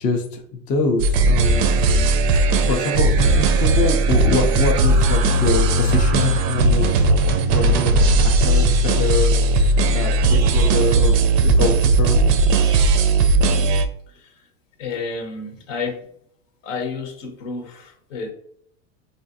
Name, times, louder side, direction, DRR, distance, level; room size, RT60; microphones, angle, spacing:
voice 1, 0.0-2.0 2.6-6.9 7.4-9.3 9.7-12.2, left 3 dB, 20° left, 2 dB, 0.4 m, -25 dB
sound 1, 1.0-13.9, right 2 dB, 45° right, 0.4 m, -17 dB
sound 2, 2.4-10.8, right 1 dB, 5° right, 0.7 m, -40 dB
voice 2, 14.8-16.0 16.6-18.3, left 4 dB, 75° left, 3 dB, 1.1 m, -30 dB
3.6 x 2.5 x 2.6 m, 0.68 s
supercardioid pair, 125°, 39 cm